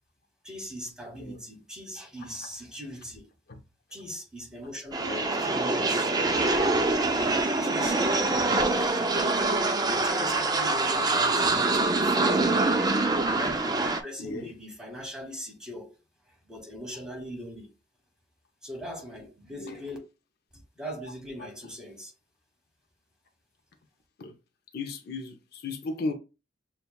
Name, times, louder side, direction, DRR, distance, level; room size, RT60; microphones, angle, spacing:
voice 1, 0.4-3.3 3.9-6.1 7.6-9.4 9.8-12.4 13.3-16.0 16.4-17.7 18.6-20.0 20.5-22.1, equal, 5° right, 1.2 m, -40 dB
sound 1, 4.9-14.0, right 2 dB, 20° right, 0.4 m, -25 dB
voice 2, 5.0-5.4 14.2-14.5 19.6-19.8 24.2-24.3 24.7-26.1, left 3 dB, 60° left, 0.5 m, -35 dB
6.7 x 2.3 x 2.2 m
head